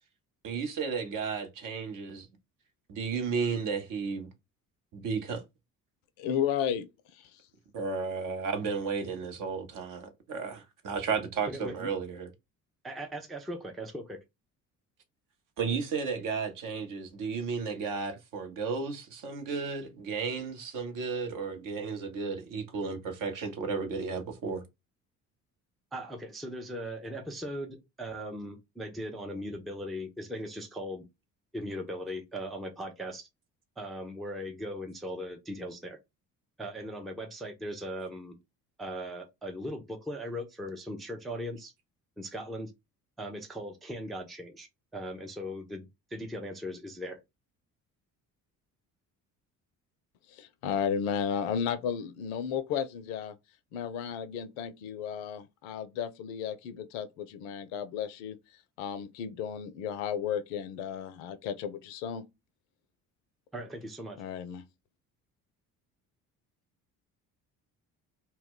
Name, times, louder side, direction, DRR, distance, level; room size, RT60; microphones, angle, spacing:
voice 1, 0.4-2.3 2.9-4.3 4.9-5.4 7.7-12.3 15.6-24.6, right 5 dB, 45° right, 0.8 m, -33 dB
voice 2, 6.2-6.8 50.4-53.4 53.7-58.4 58.8-62.3 64.2-64.6, left 8 dB, 60° left, 0.5 m, -33 dB
voice 3, 11.5-11.9 12.8-14.2 25.9-31.0 31.5-33.3 33.8-36.0 36.6-38.4 38.8-41.7 42.2-42.7 43.2-47.2 63.5-64.2, equal, ahead, 0.4 m, -39 dB
2.1 x 2.1 x 3.7 m
figure-of-eight pair, 50°, 46 cm